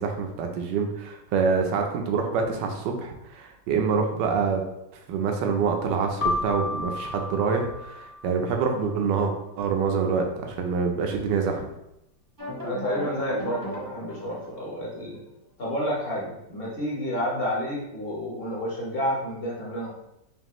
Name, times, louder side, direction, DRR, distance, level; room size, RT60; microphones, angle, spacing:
voice 1, 0.0-4.6 5.1-11.6, right 5 dB, 85° right, 3 dB, 1.4 m, -26 dB
Keyboard (musical), 6.2-8.7, left 2 dB, 65° left, 1.1 m, -32 dB
sound 1, 12.4-15.1, equal, 20° right, 0.7 m, -36 dB
voice 2, 12.6-15.2 15.6-19.9, equal, 40° left, -5 dB, 0.9 m, -30 dB
5.2 x 2.5 x 3.0 m, 0.87 s
omnidirectional pair, 1.9 m